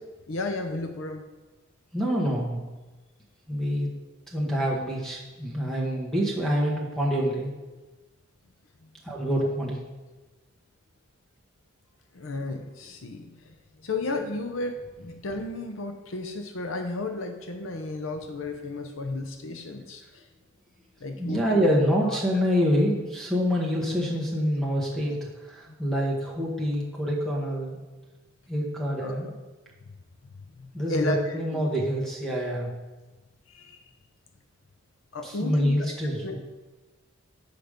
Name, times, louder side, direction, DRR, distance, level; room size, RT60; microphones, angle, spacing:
voice 1, 0.3-1.2 8.8-8.9 12.1-20.3 21.0-21.8 22.1-22.2 25.7-25.8 29.0-29.2 30.6-31.7 33.5-33.9 35.1-35.7 36.2-36.4, left 2 dB, 65° left, 6 dB, 0.7 m, -33 dB
voice 2, 1.9-2.6 3.5-3.9 4.3-7.5 9.0-9.8 21.2-27.8 28.5-29.3 30.7-32.7 35.2-36.4, equal, ahead, -3 dB, 1.3 m, -26 dB
8.0 x 5.1 x 5.1 m, 1.2 s
head